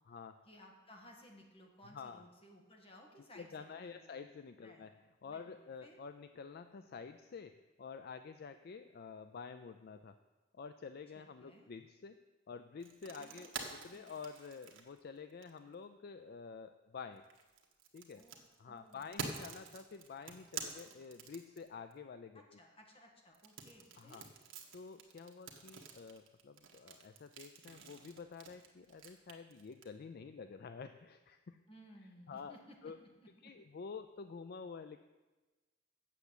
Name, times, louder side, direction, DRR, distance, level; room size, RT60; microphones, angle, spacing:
voice 1, 0.5-4.2 4.6-4.9 5.2-6.0 11.1-11.7 13.2-14.1 18.1-18.4 18.7-19.5 22.3-24.3 31.7-32.9 33.2-33.5, equal, 30° left, 1 dB, 1.8 m, -59 dB
voice 2, 3.3-4.9 5.2-7.5 7.8-10.2 10.5-12.2 12.5-17.2 17.9-18.2 18.6-22.6 24.0-24.3 24.7-31.6 32.3-32.5 32.8-33.0 33.4-35.0, left 5 dB, 50° left, 9 dB, 0.4 m, -49 dB
sound 1, 12.8-15.7 17.2-21.9 23.3-29.8, right 5 dB, 75° right, 1.4 m, -48 dB
8.3 x 6.8 x 8.1 m, 1.2 s
head